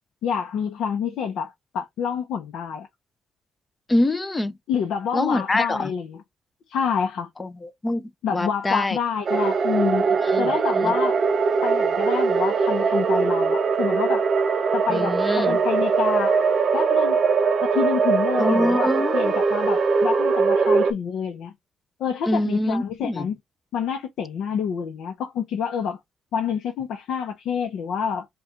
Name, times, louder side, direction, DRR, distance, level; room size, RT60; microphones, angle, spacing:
voice 1, 0.2-2.9 4.7-6.2 6.7-7.3 8.2-10.1 10.4-11.1 11.6-14.3 14.7-16.4 16.7-17.2 17.6-21.5 22.0-23.4 23.7-26.0 26.3-28.3, left 7 dB, 75° left, 0.6 m, -27 dB
voice 2, 3.9-4.5 5.1-5.9 7.4-9.0 10.2-10.9 14.9-15.6 18.4-19.4 22.3-23.3, left 1 dB, 15° left, 0.4 m, -25 dB
sound 1, 9.3-20.9, right 5 dB, 40° right, 0.5 m, -21 dB
4.2 x 2.3 x 3.6 m
cardioid pair, 135°, 0 cm